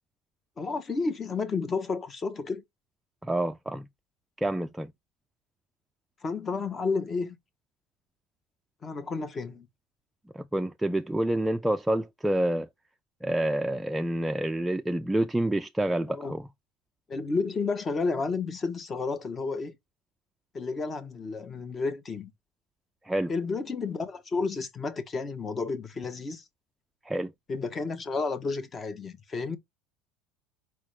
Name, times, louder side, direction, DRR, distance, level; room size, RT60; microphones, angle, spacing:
voice 1, 0.6-2.6 6.2-7.4 8.8-9.7 16.1-16.3 17.1-19.7 20.5-22.3 23.3-26.4 27.5-29.6, left 4 dB, 25° left, 0.9 m, -31 dB
voice 2, 3.2-3.9 4.4-4.9 10.3-12.7 13.2-16.4 23.1-23.3 27.1-27.3, right 1 dB, 5° right, 0.3 m, -28 dB
4.4 x 3.5 x 3.3 m
supercardioid pair, 115°, 0 cm